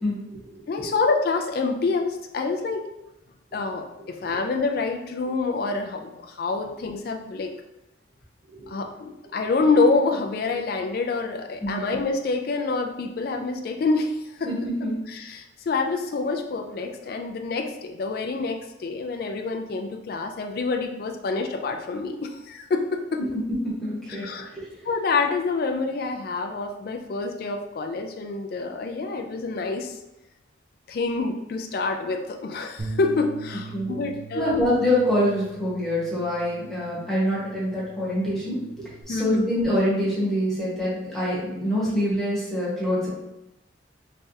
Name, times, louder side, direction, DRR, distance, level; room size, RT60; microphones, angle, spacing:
voice 1, 0.0-0.9 4.2-4.4 8.5-8.7 11.6-11.8 14.4-15.0 23.2-24.7 33.7-34.0 34.3-38.6 39.1-43.1, left 1 dB, ahead, -8 dB, 1.2 m, -25 dB
voice 2, 0.7-2.8 3.5-7.5 8.7-14.5 15.1-23.2 24.2-24.5 24.9-30.0 30.9-34.6 39.1-39.4, left 3 dB, 50° left, 4 dB, 0.3 m, -27 dB
Bass guitar, 32.8-39.0, right 3 dB, 35° right, 0.5 m, -41 dB
3.3 x 3.2 x 2.7 m, 0.92 s
head